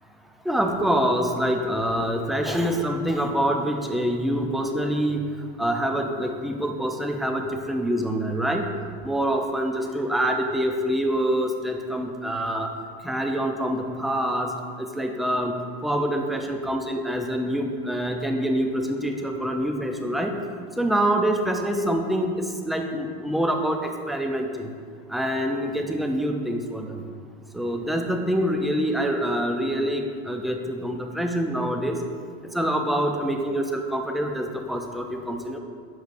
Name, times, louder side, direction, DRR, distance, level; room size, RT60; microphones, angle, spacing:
voice 1, 0.5-5.3 5.6-8.6 9.0-12.7 13.0-14.5 14.8-15.5 15.8-20.3 20.8-24.7 25.1-27.0 27.5-32.0 32.5-35.6, equal, ahead, 3 dB, 0.4 m, -25 dB
7.5 x 5.1 x 2.6 m, 2.1 s
supercardioid pair, 105°, 33 cm